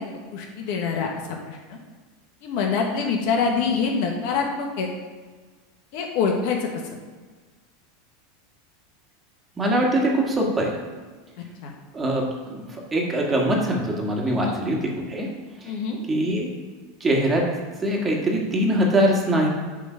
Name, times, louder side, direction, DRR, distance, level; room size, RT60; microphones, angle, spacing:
voice 1, 0.3-1.1 1.5-1.8 2.4-4.9 5.9-6.7 11.6-11.7 14.3-14.6 15.6-16.0, left 5 dB, 65° left, 1 dB, 1.4 m, -25 dB
voice 2, 9.6-10.8 11.9-15.3 15.6-15.7 16.1-16.5 17.0-17.5 17.8-19.5, right 1 dB, 20° right, 0 dB, 1.7 m, -23 dB
8.2 x 3.8 x 5.6 m, 1.4 s
supercardioid pair, 115°, 0 cm